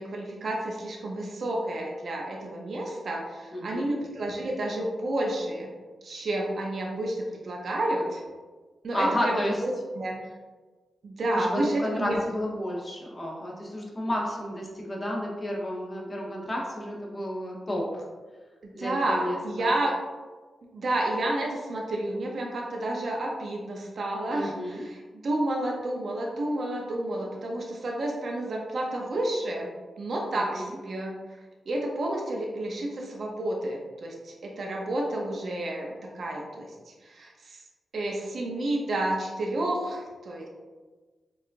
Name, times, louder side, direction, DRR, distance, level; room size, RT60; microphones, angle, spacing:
voice 1, 0.0-5.7 6.0-8.2 8.8-10.3 11.0-12.2 18.6-19.9 20.7-31.1 31.7-36.7 37.0-37.6 37.9-40.5, right 1 dB, 65° right, -1 dB, 0.5 m, -30 dB
voice 2, 3.5-3.9 8.9-9.6 11.3-18.0 18.7-19.7 24.3-24.8 30.3-30.8, equal, 25° left, -3 dB, 0.7 m, -31 dB
4.6 x 2.4 x 2.5 m, 1.4 s
cardioid pair, 75°, 0 cm